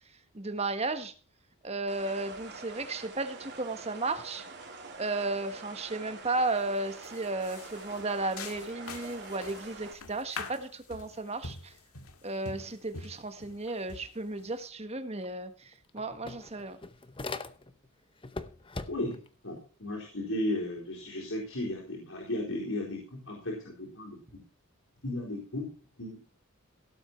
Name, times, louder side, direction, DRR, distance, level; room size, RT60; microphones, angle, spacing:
voice 1, 0.3-1.1 1.6-4.4 5.0-11.7 12.2-16.8, right 2 dB, 30° right, 9 dB, 1.4 m, -34 dB
sound 1, 1.9-9.9, right 3 dB, 50° right, 3.3 m, -46 dB
sound 2, 6.4-6.7 7.0-14.7, left 4 dB, 90° left, 1.9 m, -45 dB
sound 3, 15.2-15.3 15.6-17.9 18.2-19.3, left 3 dB, 25° left, 0.8 m, -41 dB
voice 2, 18.9-19.2 19.4-24.4 25.0-25.7 26.0-26.2, left 1 dB, 70° left, -3 dB, 4.3 m, -35 dB
17.0 x 8.2 x 4.5 m, 0.38 s
head